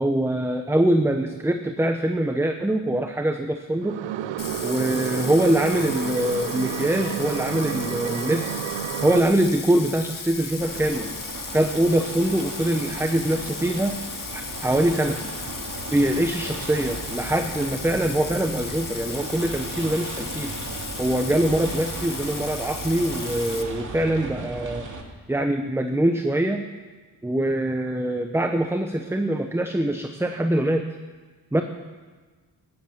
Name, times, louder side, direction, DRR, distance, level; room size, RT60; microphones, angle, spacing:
voice 1, 0.0-4.0 4.6-8.7 9.0-11.1 11.5-15.2 15.9-20.5 21.0-24.9 25.3-26.6 27.2-30.9 31.5-31.6, right 1 dB, 5° right, 5 dB, 1.0 m, -23 dB
sound 1, 3.8-9.2, right 12 dB, 85° right, 0.7 m, -30 dB
Bathtub (filling or washing), 4.4-23.6, left 5 dB, 45° left, 1.8 m, -36 dB
sound 2, 10.6-25.0, right 3 dB, 45° right, 2.8 m, -36 dB
16.0 x 10.5 x 7.4 m, 1.4 s
cardioid pair, 65°, 43 cm